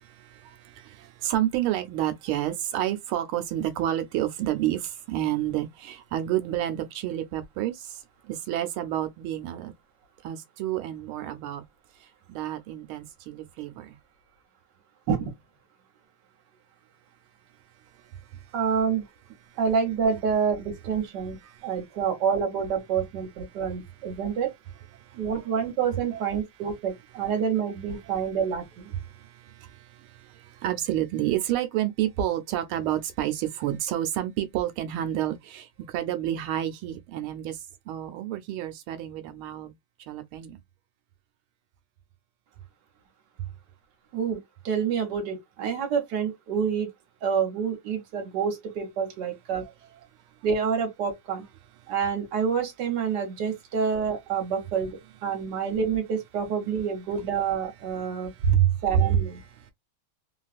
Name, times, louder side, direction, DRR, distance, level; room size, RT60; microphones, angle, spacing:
voice 1, 0.0-8.0 8.3-9.7 10.2-11.6 12.3-14.0 21.5-21.7 24.9-25.2 26.1-26.2 29.0-37.6 37.9-39.7 40.1-40.6 49.6-49.7 58.0-59.1 59.4-59.7, right 11 dB, 90° right, 1.5 m, -29 dB
voice 2, 18.5-19.1 19.6-21.4 21.6-24.5 25.1-28.9 44.1-44.4 44.6-46.9 47.2-49.6 50.4-51.4 51.9-58.3 58.8-59.4, right 6 dB, 60° right, 1.5 m, -27 dB
3.6 x 2.3 x 2.4 m
omnidirectional pair, 2.3 m